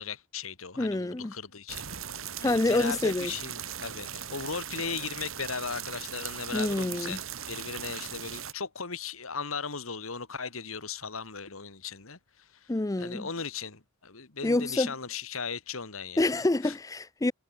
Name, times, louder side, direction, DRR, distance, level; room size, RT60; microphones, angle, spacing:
voice 1, 0.0-1.9 2.4-12.7 13.0-16.3 16.6-16.8, left 5 dB, 85° left, 2.4 m, -37 dB
voice 2, 0.8-1.3 2.4-3.3 6.5-7.2 12.7-13.3 14.4-14.9 16.2-17.3, left 2 dB, 15° left, 0.5 m, -27 dB
sound 1, 1.7-8.5, right 9 dB, 80° right, 3.2 m, -39 dB
head